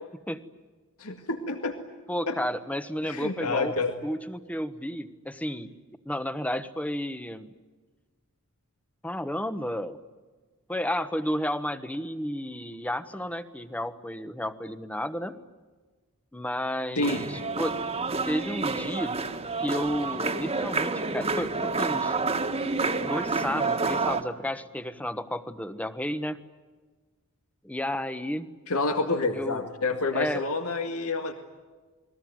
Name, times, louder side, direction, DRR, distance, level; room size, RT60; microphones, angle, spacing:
voice 1, 1.0-1.8 2.3-2.4 3.1-3.9 17.0-17.2 28.7-31.3, left 3 dB, 80° left, 5 dB, 2.1 m, -28 dB
voice 2, 2.1-3.7 4.0-5.7 6.0-7.5 9.0-10.0 10.7-15.4 16.3-17.8 18.3-19.2 19.6-22.2 23.0-26.4 27.6-28.5 29.3-29.6 30.1-30.4, equal, 5° left, 11 dB, 1.2 m, -32 dB
sound 1, 17.0-24.2, right 3 dB, 30° right, 1.7 m, -29 dB
29.0 x 21.5 x 9.5 m, 1.3 s
head